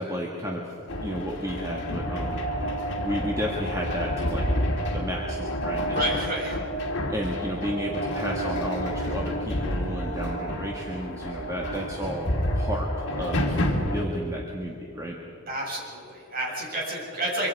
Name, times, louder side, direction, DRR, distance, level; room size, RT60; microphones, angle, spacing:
voice 1, 0.0-2.4 3.0-4.4 4.9-6.0 7.1-13.6 13.9-15.2, equal, 15° right, -2 dB, 1.7 m, -32 dB
sound 1, 0.9-14.1, equal, 50° left, 2.5 m, -29 dB
voice 2, 5.9-6.5 15.5-17.5, right 1 dB, 40° right, -3 dB, 6.8 m, -30 dB
25.0 x 25.0 x 4.8 m, 2.8 s
head